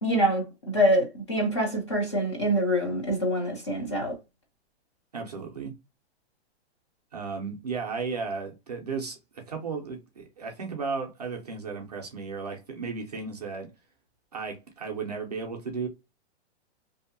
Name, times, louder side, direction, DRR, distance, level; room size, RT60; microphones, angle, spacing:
voice 1, 0.0-4.2, equal, 25° left, 0.4 m, -25 dB
voice 2, 5.1-5.7 7.1-13.7 14.3-15.9, right 4 dB, 40° right, 0.4 m, -34 dB
2.6 x 2.1 x 2.5 m
hypercardioid pair, 180°, 34 cm